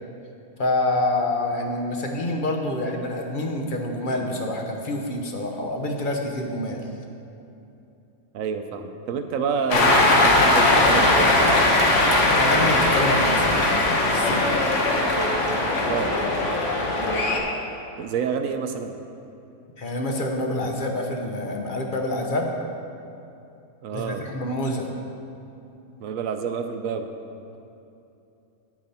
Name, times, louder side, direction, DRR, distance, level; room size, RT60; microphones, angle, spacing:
voice 1, 0.6-6.8 10.0-10.1 12.4-13.7 14.0-14.5 19.8-22.5 23.9-24.9, left 1 dB, 40° left, 2 dB, 1.0 m, -27 dB
voice 2, 8.3-11.6 15.7-16.1 18.0-18.9 23.8-24.3 26.0-27.1, right 6 dB, 70° right, 7 dB, 1.0 m, -28 dB
Cheering, 9.7-17.4, left 2 dB, 55° left, 1.4 m, -19 dB
9.7 x 8.8 x 4.2 m, 2.8 s
omnidirectional pair, 1.5 m